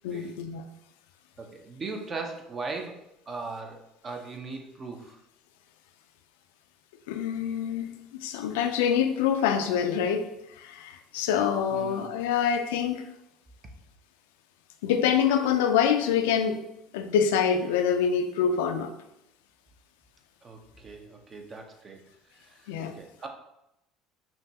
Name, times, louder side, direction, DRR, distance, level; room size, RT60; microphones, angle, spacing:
voice 1, 0.0-0.6 7.1-7.9 8.2-10.3 10.6-13.0 14.8-16.6 16.9-18.9 22.7-22.9, left 8 dB, 85° left, 7 dB, 0.4 m, -25 dB
voice 2, 1.4-5.2 11.7-12.1 20.4-22.0 22.3-23.3, right 3 dB, 35° right, 3 dB, 0.7 m, -39 dB
5.5 x 2.3 x 2.8 m, 0.85 s
supercardioid pair, 85°, 0 cm